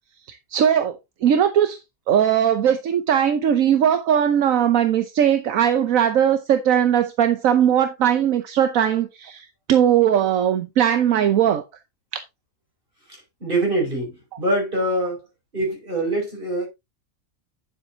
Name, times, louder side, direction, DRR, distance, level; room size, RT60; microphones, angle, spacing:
voice 1, 0.3-1.8 2.1-11.6, right 9 dB, 75° right, 1.2 m, -19 dB
voice 2, 13.4-15.2 15.5-16.7, right 1 dB, 40° right, 6.1 m, -24 dB
9.9 x 7.4 x 2.8 m
omnidirectional pair, 1.4 m